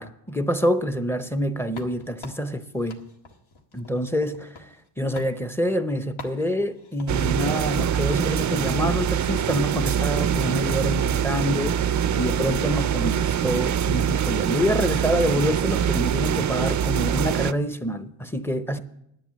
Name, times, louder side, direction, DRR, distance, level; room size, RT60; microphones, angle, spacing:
voice 1, 0.0-3.0 3.7-4.7 5.0-18.8, equal, 5° left, 0.6 m, -26 dB
sound 1, 1.7-4.9 5.2-5.4 6.2-7.2, left 3 dB, 80° left, 1.6 m, -45 dB
sound 2, 7.1-17.5, right 9 dB, 40° right, 0.4 m, -24 dB
10.5 x 8.1 x 7.4 m
cardioid pair, 105°, 47 cm